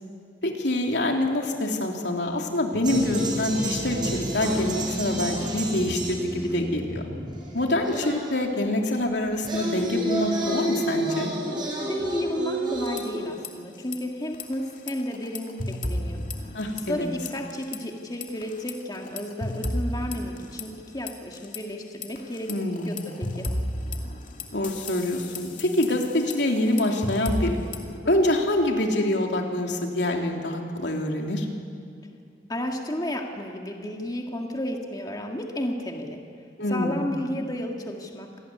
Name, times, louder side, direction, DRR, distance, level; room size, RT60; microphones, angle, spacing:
voice 1, 0.4-7.0 7.5-11.3 16.5-17.1 22.5-23.1 24.5-27.6 28.0-31.5 36.6-37.1, left 1 dB, 80° left, 1 dB, 3.2 m, -25 dB
sound 1, 2.7-6.8, equal, 80° right, 1.7 m, -41 dB
sound 2, 2.8-8.5 9.3-13.2, right 1 dB, 25° right, 6.6 m, -30 dB
voice 2, 11.8-16.2 16.9-22.5 22.9-23.5 32.5-36.2 36.7-38.3, left 1 dB, 20° left, 1 dB, 2.1 m, -32 dB
sound 3, 12.7-13.5 13.8-14.0 14.3-17.0 17.3-17.8 18.2-21.6 22.0-28.0, left 1 dB, 45° left, 2.5 m, -33 dB
27.0 x 19.0 x 9.6 m, 2.4 s
head